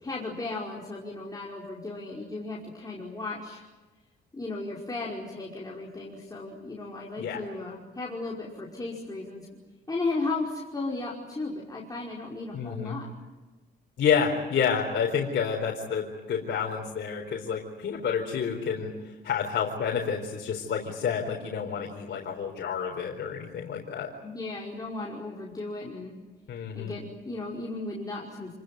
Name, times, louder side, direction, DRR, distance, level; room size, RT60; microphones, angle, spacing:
voice 1, 0.0-3.6 4.3-9.5 9.9-13.1 24.2-26.1 26.7-28.5, left 3 dB, 20° left, -4 dB, 5.3 m, -35 dB
voice 2, 12.5-13.0 14.0-18.9 19.2-24.1 26.5-26.9, left 7 dB, 60° left, -1 dB, 4.5 m, -29 dB
28.5 x 20.5 x 9.3 m, 1.2 s
cardioid pair, 90°, 20 cm